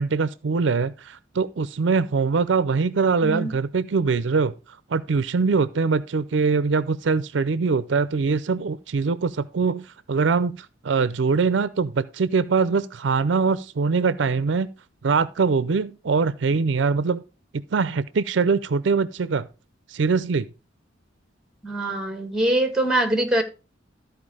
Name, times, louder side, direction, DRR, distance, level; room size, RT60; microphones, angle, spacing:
voice 1, 0.0-4.5 4.9-14.7 15.0-17.2 17.7-19.5 19.9-20.5, right 4 dB, 70° right, 0.5 m, -23 dB
voice 2, 3.2-3.5 21.6-23.4, right 1 dB, 5° right, 1.6 m, -23 dB
13.5 x 4.7 x 4.8 m
head